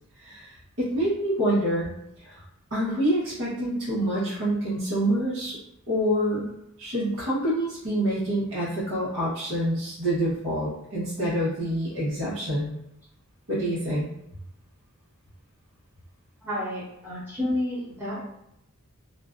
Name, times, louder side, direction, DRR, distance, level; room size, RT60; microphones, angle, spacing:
voice 1, 0.2-1.9 2.2-2.4 2.7-5.6 5.9-6.5 6.8-12.7 13.5-14.1, right 1 dB, 60° right, -9 dB, 0.8 m, -26 dB
voice 2, 16.4-18.2, left 1 dB, 10° right, -9 dB, 1.0 m, -30 dB
2.4 x 2.1 x 2.3 m, 0.80 s
head